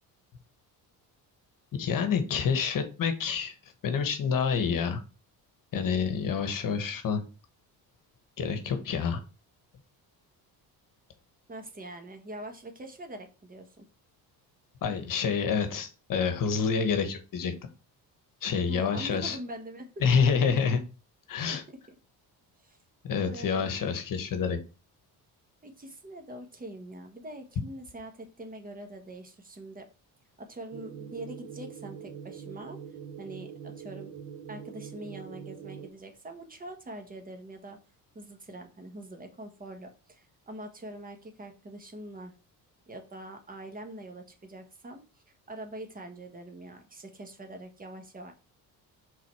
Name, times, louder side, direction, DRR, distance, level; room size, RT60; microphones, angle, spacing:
voice 1, 1.8-3.5 3.8-5.0 5.7-7.2 8.4-9.2 14.8-17.5 18.4-19.4 20.0-20.8 21.3-21.6 23.0-24.6, left 6 dB, 55° left, 8 dB, 1.3 m, -27 dB
voice 2, 11.5-13.9 18.7-19.9 22.6-22.8 23.2-23.7 25.6-29.9 30.4-32.8 33.2-34.1 34.5-37.8 38.1-42.3 42.9-48.3, right 1 dB, 20° right, 4 dB, 1.5 m, -43 dB
sound 1, 30.7-35.9, right 7 dB, 75° right, 1.2 m, -43 dB
5.8 x 3.9 x 4.7 m, 0.31 s
cardioid pair, 105°, 40 cm